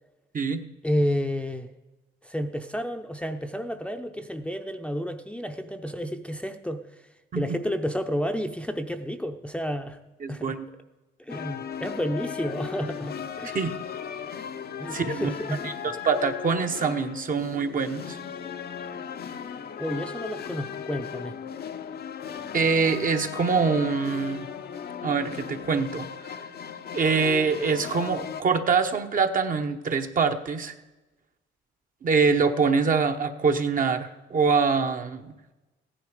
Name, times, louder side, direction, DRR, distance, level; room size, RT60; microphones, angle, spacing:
voice 1, 0.8-1.7 2.2-6.8 7.3-10.0 10.3-10.6 11.2-13.6 14.8-15.9 19.8-21.4, equal, 5° left, 5 dB, 0.7 m, -31 dB
voice 2, 10.2-10.7 13.5-13.7 14.9-15.3 15.6-18.2 22.5-24.4 25.0-26.1 26.9-30.7 32.0-35.3, right 5 dB, 45° right, 6 dB, 1.0 m, -24 dB
sound 1, 11.3-28.4, left 8 dB, 50° left, 0.7 m, -37 dB
15.0 x 10.5 x 4.9 m, 1.1 s
cardioid pair, 90°, 20 cm